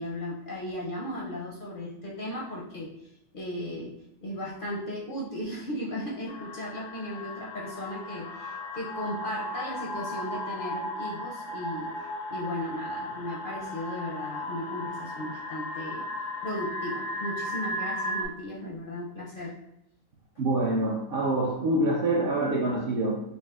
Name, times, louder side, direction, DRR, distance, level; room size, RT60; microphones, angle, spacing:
voice 1, 0.0-2.9 3.3-4.0 4.2-11.9 12.3-16.1 16.4-19.5, left 1 dB, 55° left, -4 dB, 0.6 m, -36 dB
sound 1, 6.3-18.3, left 1 dB, 75° left, 1.0 m, -36 dB
voice 2, 20.4-23.2, right 1 dB, 60° right, -2 dB, 0.6 m, -26 dB
5.1 x 2.5 x 2.4 m, 0.81 s
omnidirectional pair, 1.4 m